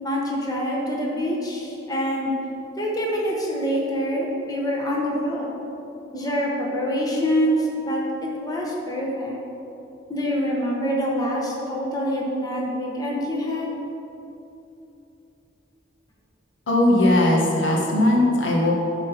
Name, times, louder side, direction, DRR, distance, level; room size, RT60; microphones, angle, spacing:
voice 1, 0.0-2.3 2.8-5.5 6.1-9.4 10.1-13.7, equal, 20° left, -3 dB, 1.1 m, -25 dB
voice 2, 16.7-18.8, left 1 dB, 90° left, -2 dB, 1.5 m, -19 dB
10.5 x 4.0 x 5.7 m, 2.9 s
head